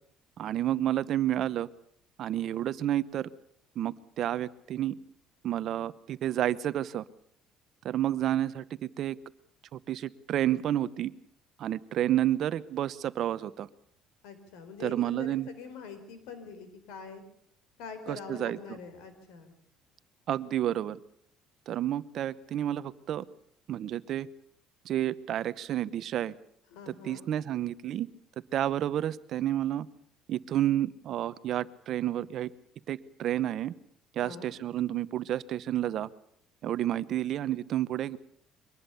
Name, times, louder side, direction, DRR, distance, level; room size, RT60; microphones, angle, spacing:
voice 1, 0.4-1.7 2.2-3.3 3.8-4.9 5.4-7.0 7.8-8.6 9.0-9.2 9.7-11.1 11.6-13.7 14.8-15.5 18.1-18.8 20.3-21.0 21.7-23.2 23.7-24.3 24.8-26.3 26.9-28.1 28.5-29.9 30.3-32.5 32.9-33.7 34.1-36.1 36.6-38.2, right 12 dB, 50° right, 16 dB, 0.9 m, -30 dB
voice 2, 14.2-17.2 17.8-19.5 26.7-27.3 34.2-34.5, left 5 dB, 90° left, 10 dB, 4.3 m, -44 dB
23.5 x 19.5 x 7.0 m, 0.67 s
cardioid pair, 135°, 0 cm